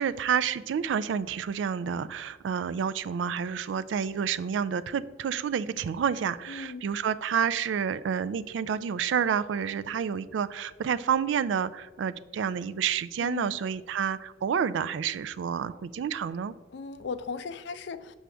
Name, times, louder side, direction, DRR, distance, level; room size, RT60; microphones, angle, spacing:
voice 1, 0.0-16.5, right 7 dB, 80° right, 16 dB, 0.3 m, -29 dB
voice 2, 6.5-6.8 13.2-13.6 16.7-18.2, left 4 dB, 65° left, 12 dB, 0.4 m, -37 dB
6.3 x 6.2 x 3.4 m, 1.3 s
head